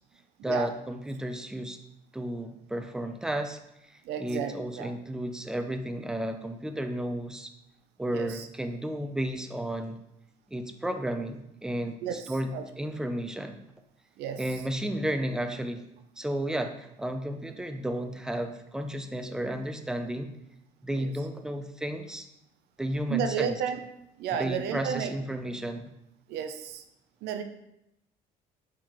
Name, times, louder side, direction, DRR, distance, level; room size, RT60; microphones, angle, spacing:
voice 1, 0.4-1.8 2.1-7.5 8.0-10.0 10.5-13.6 14.4-15.8 16.2-20.3 20.8-22.3 22.8-23.5 24.3-25.9, right 1 dB, 5° right, 6 dB, 0.4 m, -33 dB
voice 2, 4.0-4.9 8.1-8.5 12.0-12.3 12.5-12.6 14.2-14.4 21.0-21.1 23.1-23.8 24.2-25.1 26.3-26.8 27.2-27.4, right 8 dB, 75° right, 7 dB, 0.5 m, -32 dB
4.6 x 3.6 x 3.0 m, 0.84 s
cardioid pair, 110°, 17 cm